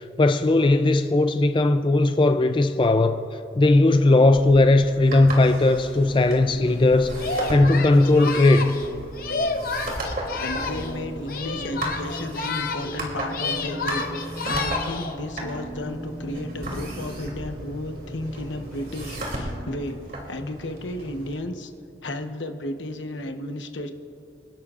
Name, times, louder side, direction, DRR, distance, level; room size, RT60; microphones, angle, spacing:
voice 1, 0.0-3.3 3.6-8.8, left 2 dB, 25° left, 8 dB, 0.4 m, -18 dB
sound 1, 4.3-21.3, right 1 dB, 50° right, 3.0 m, -35 dB
sound 2, 5.0-20.2, right 1 dB, 30° right, 1.3 m, -41 dB
Singing, 7.2-11.0 11.3-13.0 13.3-15.2, left 4 dB, 50° left, 0.8 m, -30 dB
voice 2, 10.4-20.0 20.3-21.7 22.0-23.9, left 1 dB, 90° left, 6 dB, 1.0 m, -33 dB
29.0 x 12.0 x 2.5 m, 2.9 s
head